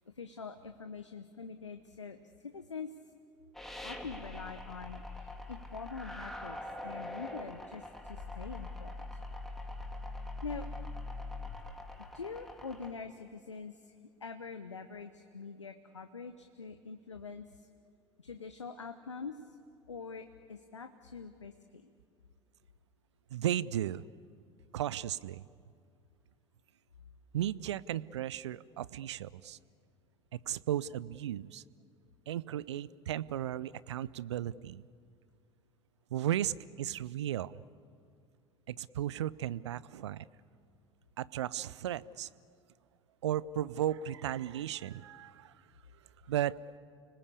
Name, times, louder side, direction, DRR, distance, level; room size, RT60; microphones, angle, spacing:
voice 1, 0.1-2.2 2.4-2.9 3.8-9.1 10.4-10.7 12.1-17.7 18.2-19.6 19.9-21.9, left 5 dB, 85° left, 9 dB, 0.9 m, -44 dB
sound 1, 3.5-12.9, left 2 dB, ahead, 2.5 m, -43 dB
voice 2, 23.3-24.1 24.7-25.4 27.3-29.6 30.3-31.6 32.3-34.8 36.1-37.6 38.7-40.3 41.2-42.3 43.2-45.5 46.3-46.6, right 11 dB, 75° right, 20 dB, 0.6 m, -35 dB
29.5 x 19.5 x 8.4 m, 2.2 s
figure-of-eight pair, 70°, 15 cm